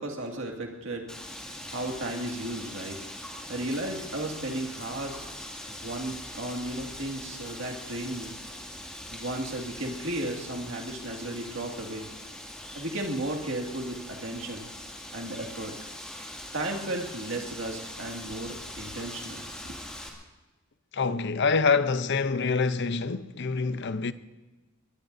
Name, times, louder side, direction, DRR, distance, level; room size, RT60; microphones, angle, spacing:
voice 1, 0.0-5.2 5.7-8.4 9.1-12.1 12.7-14.7 15.1-15.8 16.5-19.8, right 1 dB, 60° right, 2.2 m, -35 dB
Wind, 1.1-20.1, left 1 dB, 5° left, 2.3 m, -42 dB
voice 2, 20.9-24.1, left 4 dB, 55° left, 0.7 m, -26 dB
22.5 x 21.0 x 2.7 m
head